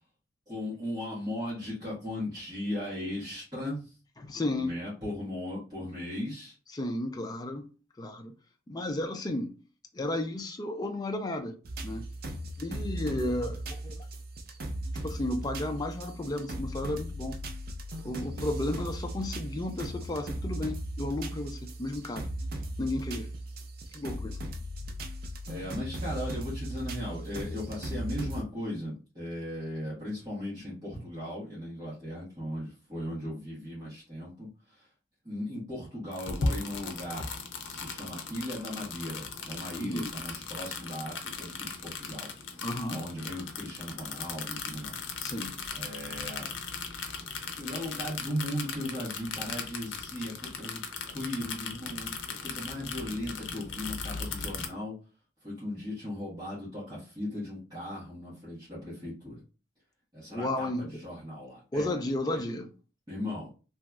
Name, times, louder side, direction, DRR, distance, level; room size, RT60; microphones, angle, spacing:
voice 1, 0.5-3.9 4.6-6.5 25.5-34.9 35.2-37.4 37.6-42.3 42.9-45.0 45.7-46.5 47.6-50.8 51.1-55.0 55.4-59.4 60.1-61.9 62.3-62.4 63.1-63.5, left 1 dB, 20° right, 1.3 m, -37 dB
voice 2, 4.2-4.8 6.7-7.7 8.0-8.3 8.7-9.5 9.9-11.6 11.8-12.1 12.6-14.1 14.9-17.4 18.0-22.3 22.8-23.3 23.9-24.4 39.8-40.1 42.6-43.0 45.2-45.5 60.3-61.0 61.7-62.7, left 1 dB, 20° left, 0.3 m, -33 dB
sound 1, 11.6-28.4, right 1 dB, 50° right, 0.4 m, -37 dB
sound 2, 36.1-54.7, left 4 dB, 85° left, 0.5 m, -38 dB
2.9 x 2.7 x 2.3 m
head